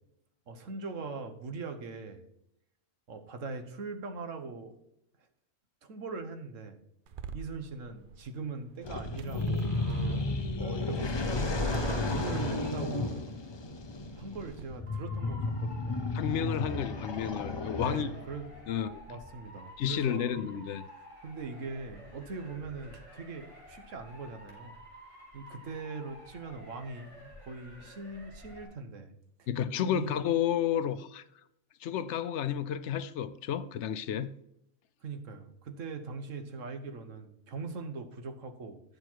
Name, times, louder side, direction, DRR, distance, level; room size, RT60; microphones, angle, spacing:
voice 1, 0.5-2.2 3.1-4.8 5.8-6.8 7.3-9.7 10.6-13.2 13.5-13.6 14.1-16.0 17.8-18.5 19.1-20.5 21.0-24.8 25.3-29.1 29.4-29.5 29.9-30.2 35.0-38.8, right 4 dB, 80° right, 1.4 m, -41 dB
sound 1, 7.1-14.6, right 7 dB, 60° right, 0.6 m, -44 dB
sound 2, 8.8-18.4, left 3 dB, 35° left, 0.4 m, -33 dB
Motor vehicle (road) / Siren, 14.9-28.6, equal, 25° right, 2.6 m, -51 dB
voice 2, 16.1-18.1 18.7-19.0 19.8-20.8 29.5-31.2 31.8-34.3, left 9 dB, 70° left, 0.8 m, -31 dB
9.6 x 6.4 x 4.5 m
omnidirectional pair, 1.3 m